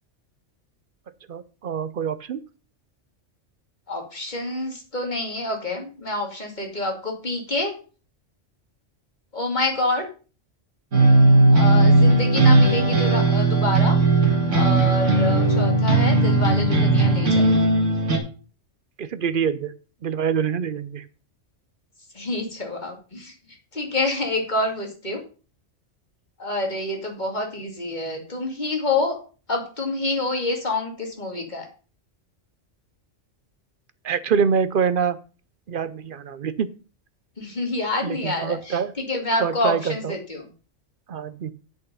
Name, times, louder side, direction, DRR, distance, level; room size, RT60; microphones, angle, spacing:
voice 1, 1.3-2.4 19.0-19.7 20.0-21.0 34.0-35.2 35.7-36.7 38.0-38.9 39.4-40.2 41.1-41.5, right 7 dB, 55° right, 14 dB, 0.7 m, -25 dB
voice 2, 3.9-7.7 9.3-10.1 11.5-14.0 14.5-17.7 22.1-23.3 23.7-25.2 26.4-29.2 29.5-31.7 37.4-40.5, left 2 dB, 35° left, 1 dB, 2.5 m, -27 dB
sound 1, 10.9-18.2, right 2 dB, 80° right, 2.2 m, -17 dB
8.3 x 6.5 x 5.5 m, 0.36 s
omnidirectional pair, 1.3 m